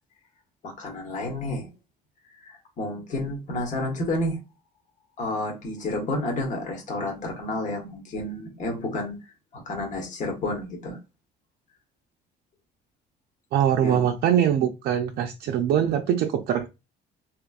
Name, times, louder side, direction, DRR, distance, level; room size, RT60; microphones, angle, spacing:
voice 1, 0.6-1.7 2.4-4.4 5.2-9.2 9.5-11.0 13.8-14.0, left 1 dB, 50° left, 1.2 m, -30 dB
voice 2, 13.5-16.7, right 9 dB, 65° right, 0.4 m, -23 dB
3.3 x 3.0 x 2.4 m
cardioid pair, 110°, 17 cm